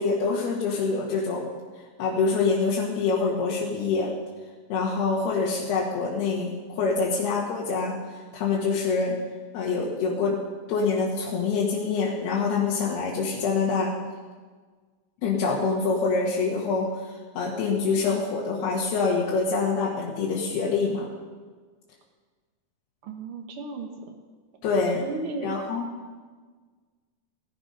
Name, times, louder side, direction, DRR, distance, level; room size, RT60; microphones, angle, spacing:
voice 1, 0.0-1.5 2.0-4.1 4.7-9.2 9.5-10.4 10.7-14.0 15.2-21.1 24.6-25.0 25.4-25.9, left 4 dB, 90° left, -4 dB, 3.6 m, -25 dB
voice 2, 23.0-24.2 25.0-25.5, right 3 dB, 90° right, 3 dB, 1.2 m, -35 dB
18.0 x 10.5 x 5.4 m, 1.5 s
omnidirectional pair, 4.4 m